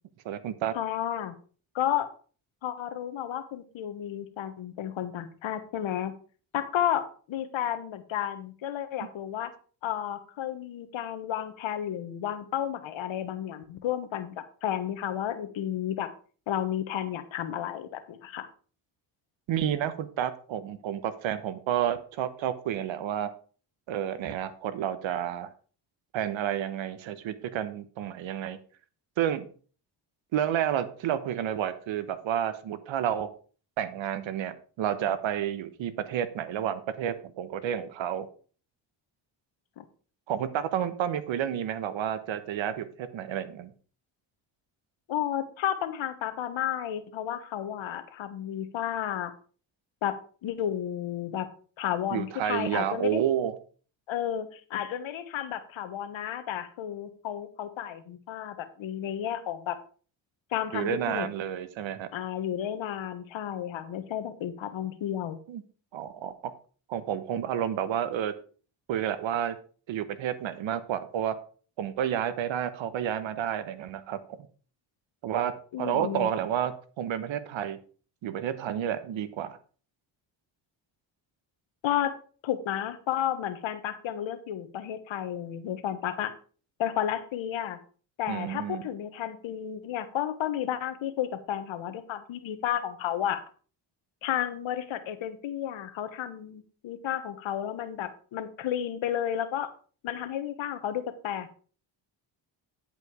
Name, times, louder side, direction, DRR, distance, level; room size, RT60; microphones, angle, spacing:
voice 1, 0.2-0.7 19.5-23.3 23.9-25.5 26.1-28.6 29.2-29.5 30.3-33.3 33.8-38.3 40.3-43.7 52.1-53.6 60.7-62.1 65.5-65.6 65.9-66.5 66.9-68.3 68.9-69.6 69.9-71.4 71.8-74.5 75.2-77.8 78.2-79.6 88.3-88.8, right 10 dB, 75° right, 13 dB, 1.2 m, -30 dB
voice 2, 0.7-1.3 1.7-2.1 2.6-6.1 6.5-9.5 9.8-16.1 16.5-18.5 39.8-39.9 45.1-49.3 50.0-51.5 51.8-53.2 54.1-59.8 60.5-61.3 62.1-65.4 75.7-76.3 81.8-82.1 82.4-86.3 86.8-87.8 88.2-93.4 94.2-99.7 100.0-101.5, left 10 dB, 75° left, 11 dB, 1.4 m, -32 dB
10.5 x 5.3 x 4.9 m, 0.40 s
cardioid pair, 75°, 47 cm